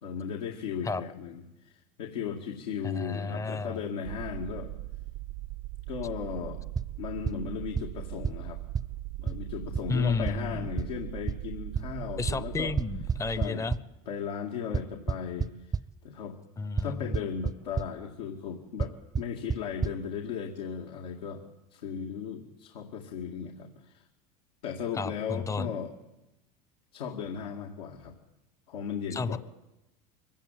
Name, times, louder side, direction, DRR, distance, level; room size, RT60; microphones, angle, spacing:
voice 1, 0.0-4.7 5.9-6.6 7.0-8.6 9.2-12.7 13.4-13.7 14.1-15.7 16.0-16.4 16.8-21.4 21.7-24.0 24.6-25.9 26.9-28.2 28.7-29.4, left 7 dB, 85° left, 0 dB, 2.2 m, -36 dB
voice 2, 2.8-3.8 9.9-10.7 12.2-13.8 16.6-17.1 24.9-25.7 29.1-29.4, left 4 dB, 15° left, 15 dB, 0.8 m, -32 dB
sound 1, 4.0-13.4, right 17 dB, 60° right, 0.8 m, -40 dB
sound 2, 6.8-6.9 7.3-7.4 7.8-7.9 8.2-8.3 8.8-8.9 9.3-9.4 9.8-9.9 10.3-10.4 10.8-10.9 11.3-11.4 11.8-11.9 12.3-12.4 12.8-13.8 14.7-15.8 16.8-16.9 17.1-17.5 17.8-17.9 18.8-18.9 19.2-19.3 19.5-19.6 19.8-19.9, right 5 dB, 20° right, 0.7 m, -27 dB
24.0 x 15.5 x 9.2 m, 0.96 s
supercardioid pair, 100°, 20 cm